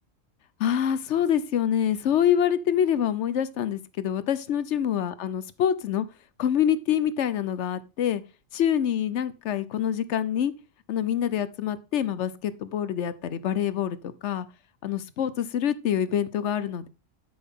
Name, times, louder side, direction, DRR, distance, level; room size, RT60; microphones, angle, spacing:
voice 1, 0.6-6.1 6.4-8.2 8.5-10.5 10.9-14.0 14.2-14.5 14.8-16.9, left 9 dB, 65° left, 15 dB, 0.9 m, -26 dB
12.5 x 6.2 x 3.6 m, 0.32 s
omnidirectional pair, 1.3 m